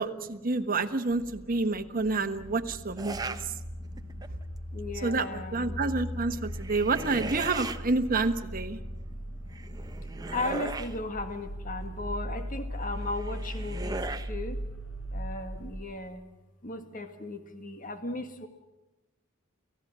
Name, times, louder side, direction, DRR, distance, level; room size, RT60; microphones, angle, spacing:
voice 1, 0.0-3.3 5.0-5.3 5.5-8.8, right 3 dB, 45° right, 7 dB, 1.3 m, -28 dB
voice 2, 0.6-4.3 4.7-6.9 8.2-14.6 15.1-16.2 16.6-18.5, left 2 dB, 40° left, 7 dB, 1.8 m, -39 dB
sound 1, 1.1-15.8, equal, 80° left, 4.8 m, -39 dB
sound 2, 3.0-3.5 4.0-4.4 6.4-7.8 9.5-11.0 12.9-14.3, right 3 dB, 20° right, 0.9 m, -38 dB
29.5 x 15.5 x 7.5 m, 1.0 s
head